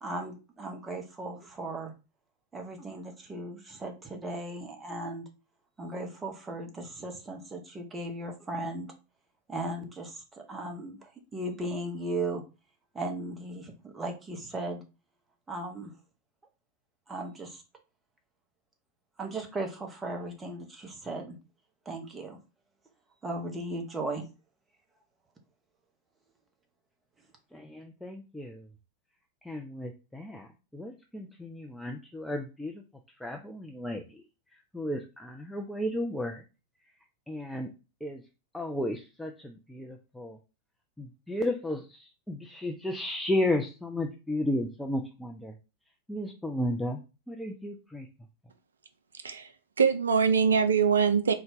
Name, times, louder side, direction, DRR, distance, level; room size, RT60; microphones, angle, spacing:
voice 1, 0.0-1.9 2.5-5.3 5.8-8.9 9.5-12.4 12.9-14.8 15.5-15.9 17.1-17.6 19.2-21.4 21.9-22.4 23.2-24.2, right 2 dB, 15° right, 3 dB, 0.9 m, -37 dB
voice 2, 27.5-28.7 29.4-32.8 33.2-34.2 34.7-36.4 37.3-37.7 38.0-38.2 38.5-40.4 41.0-45.5 46.1-47.0 47.3-48.1, left 1 dB, 5° left, 3 dB, 0.4 m, -33 dB
voice 3, 49.1-51.3, right 6 dB, 70° right, 9 dB, 0.4 m, -24 dB
3.9 x 2.3 x 3.8 m, 0.31 s
figure-of-eight pair, 90°, 0 cm